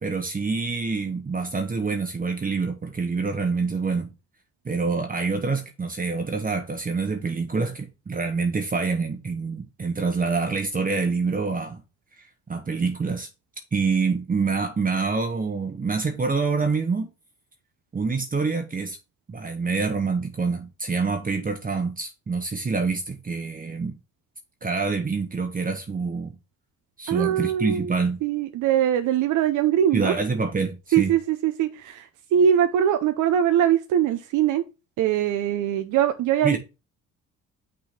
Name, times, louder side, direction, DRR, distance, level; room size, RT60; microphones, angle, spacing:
voice 1, 0.0-4.1 4.6-11.8 12.2-13.3 13.7-17.1 17.9-19.0 19.3-24.0 24.6-26.4 27.0-28.2 29.9-31.1 36.4-36.6, right 4 dB, 30° right, 1.1 m, -26 dB
voice 2, 27.1-27.9 28.2-30.1 30.9-34.6 35.0-36.6, right 10 dB, 85° right, 0.7 m, -22 dB
6.0 x 3.7 x 5.8 m
cardioid pair, 90°, 30 cm